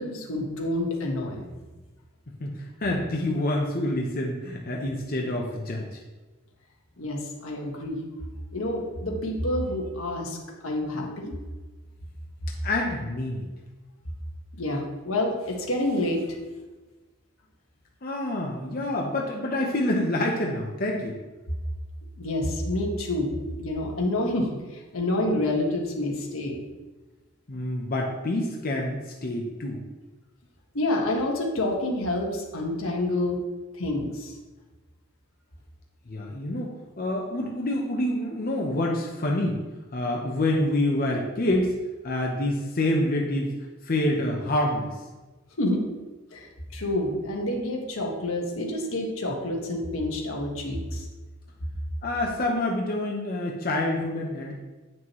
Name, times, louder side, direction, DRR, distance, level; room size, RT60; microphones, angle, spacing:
voice 1, 0.0-1.4 7.0-11.3 14.5-16.4 22.2-23.3 23.6-26.6 30.7-33.4 33.7-34.4 45.6-45.8 46.3-46.5 46.7-51.1, left 1 dB, 85° left, 0 dB, 1.5 m, -28 dB
voice 2, 2.4-6.0 12.6-13.4 18.0-21.2 27.5-29.8 36.1-39.6 39.9-41.8 42.0-43.5 43.9-44.9 52.0-54.5, left 1 dB, 45° left, -1 dB, 0.8 m, -27 dB
8.9 x 6.1 x 3.1 m, 1.2 s
head